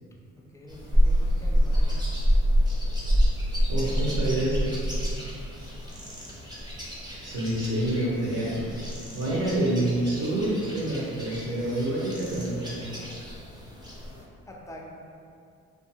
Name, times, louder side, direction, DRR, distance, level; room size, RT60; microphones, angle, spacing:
voice 1, 0.4-2.1 14.5-14.8, equal, 10° left, -2 dB, 0.3 m, -45 dB
sound 1, 0.7-14.2, equal, 15° right, 0.8 m, -28 dB
voice 2, 3.7-4.7 7.2-8.5 9.1-12.8, right 1 dB, 55° right, -6 dB, 0.9 m, -27 dB
2.4 x 2.4 x 2.8 m, 2.4 s
cardioid pair, 90°, 30 cm